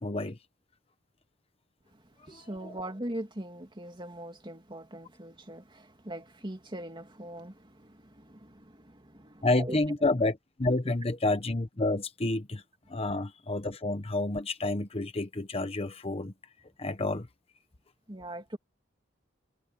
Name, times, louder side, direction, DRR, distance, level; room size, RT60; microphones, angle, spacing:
voice 1, 0.0-0.4 2.3-2.8 9.4-12.6 12.9-16.3 16.8-17.3, left 2 dB, 30° left, 1.0 m, -29 dB
voice 2, 1.9-9.8 12.9-13.0 18.1-18.6, right 1 dB, 25° right, 2.6 m, -41 dB
head